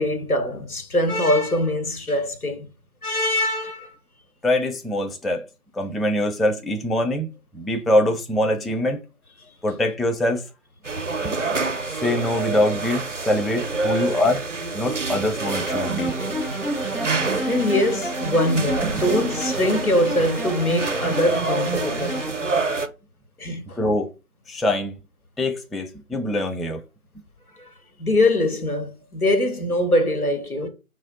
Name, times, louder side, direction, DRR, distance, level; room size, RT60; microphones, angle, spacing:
voice 1, 0.0-2.7 3.0-4.0 13.9-14.2 17.4-22.3 23.4-23.8 27.6-27.7 28.0-30.7, left 1 dB, 80° left, 1.0 m, -23 dB
voice 2, 4.4-5.5 5.7-7.3 7.5-9.0 9.6-10.4 11.2-11.3 12.0-14.4 14.7-16.1 18.8-19.0 23.8-24.1 24.5-24.9 25.4-26.8, left 1 dB, ahead, 0.3 m, -23 dB
sound 1, 10.8-22.9, right 3 dB, 60° right, 0.5 m, -28 dB
sound 2, 15.4-22.3, right 1 dB, 40° left, 0.7 m, -30 dB
2.6 x 2.0 x 4.0 m
figure-of-eight pair, 170°, 43 cm